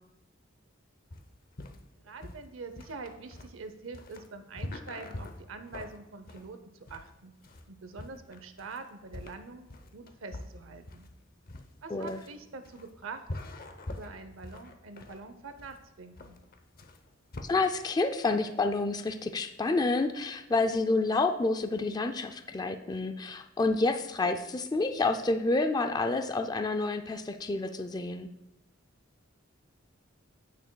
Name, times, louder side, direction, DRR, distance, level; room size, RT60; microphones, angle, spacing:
sound 1, 1.1-17.4, left 1 dB, 45° left, 0.7 m, -44 dB
voice 1, 2.0-6.6 6.9-7.3 7.7-11.0 11.8-13.3 13.9-16.4, right 4 dB, 80° right, 9 dB, 0.7 m, -45 dB
voice 2, 11.9-12.2 17.4-28.3, left 3 dB, 20° left, 7 dB, 0.3 m, -29 dB
15.5 x 6.2 x 2.2 m, 0.92 s
head